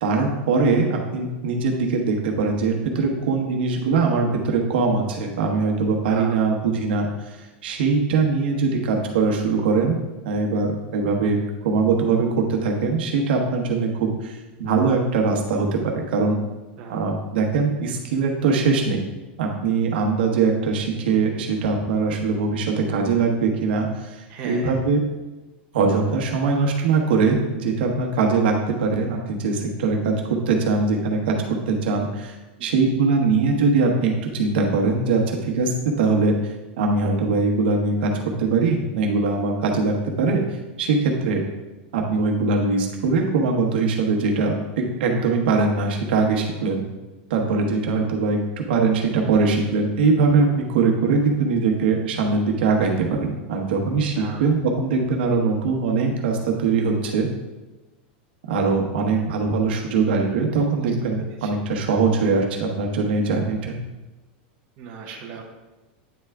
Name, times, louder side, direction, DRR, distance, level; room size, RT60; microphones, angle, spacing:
voice 1, 0.0-10.0 10.2-16.4 16.9-19.1 19.4-25.0 25.7-32.3 32.6-40.4 40.8-41.4 41.9-46.8 47.3-57.3 58.4-63.8, right 4 dB, 75° right, 1 dB, 1.1 m, -22 dB
voice 2, 6.1-6.4 16.8-17.0 24.3-24.8 32.6-32.9 54.2-54.5 60.8-60.9 61.4-61.5 64.8-65.4, right 5 dB, 40° right, -1 dB, 0.9 m, -37 dB
8.9 x 3.4 x 3.6 m, 1.1 s
supercardioid pair, 160°, 5 cm